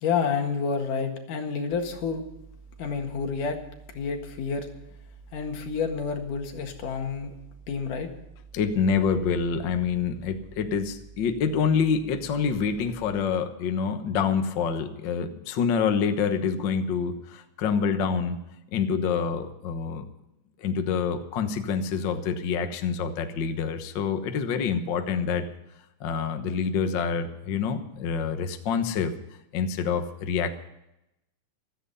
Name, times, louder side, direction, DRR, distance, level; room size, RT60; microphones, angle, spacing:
voice 1, 0.0-2.2 2.8-3.6 3.9-4.7 5.3-7.3 7.7-8.1, left 5 dB, 80° left, 4 dB, 3.3 m, -29 dB
sound 1, 1.7-13.2, right 5 dB, 30° left, 3.1 m, -50 dB
voice 2, 8.5-18.4 18.7-20.0 20.6-25.5 26.0-29.1 29.5-30.5, left 6 dB, 55° left, 7 dB, 1.3 m, -27 dB
15.5 x 13.5 x 5.5 m, 0.87 s
omnidirectional pair, 3.6 m